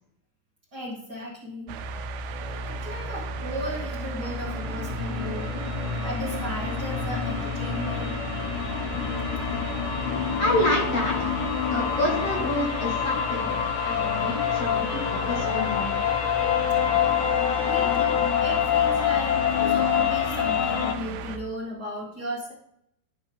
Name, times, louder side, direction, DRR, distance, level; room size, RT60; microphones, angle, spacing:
voice 1, 0.7-1.7 2.6-5.6 6.0-8.2 8.7-8.9 17.6-22.5, equal, 60° right, -6 dB, 1.0 m, -36 dB
sound 1, 1.7-21.4, right 2 dB, 85° right, 2.7 m, -35 dB
sound 2, 4.0-20.9, left 8 dB, 85° left, 1.9 m, -26 dB
voice 2, 10.4-11.3 11.7-13.5 13.8-16.1, left 1 dB, 55° left, -2 dB, 1.8 m, -28 dB
12.5 x 4.9 x 3.4 m, 0.76 s
omnidirectional pair, 4.9 m